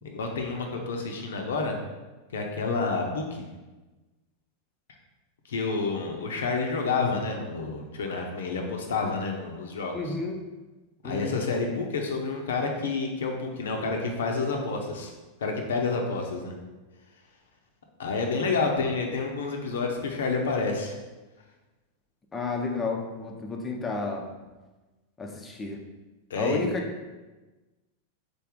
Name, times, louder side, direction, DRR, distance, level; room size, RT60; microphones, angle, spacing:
voice 1, 0.0-1.8 2.3-3.4 5.5-10.1 11.0-15.1 15.4-16.5 18.0-21.0 26.3-26.7, left 4 dB, 65° left, 2 dB, 0.6 m, -29 dB
voice 2, 9.9-10.4 11.0-11.4 22.3-24.3 25.2-25.9 26.4-26.9, left 3 dB, 15° left, 1 dB, 0.5 m, -32 dB
4.0 x 3.3 x 3.6 m, 1.2 s
figure-of-eight pair, 90°, 0 cm